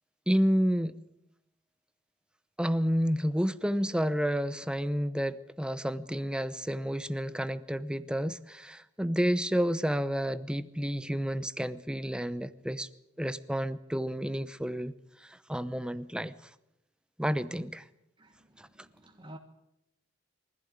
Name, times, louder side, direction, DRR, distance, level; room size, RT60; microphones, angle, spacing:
voice 1, 0.3-1.0 2.6-12.9 13.2-14.9 15.2-16.3 17.2-17.8 18.6-18.7, equal, 5° right, 0.8 m, -30 dB
voice 2, 18.2-19.4, right 1 dB, 25° right, 1.5 m, -51 dB
24.0 x 15.5 x 9.6 m
head